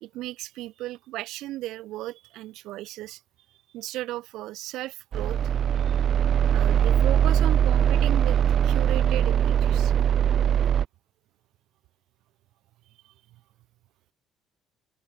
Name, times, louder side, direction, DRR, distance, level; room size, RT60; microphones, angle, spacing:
voice 1, 0.0-3.2 3.7-5.4 6.5-8.4 8.6-9.9, right 16 dB, 80° right, 2.6 m, -35 dB
sound 1, 5.1-10.9, right 9 dB, 45° right, 1.6 m, -21 dB
cardioid pair, 145°, 0 cm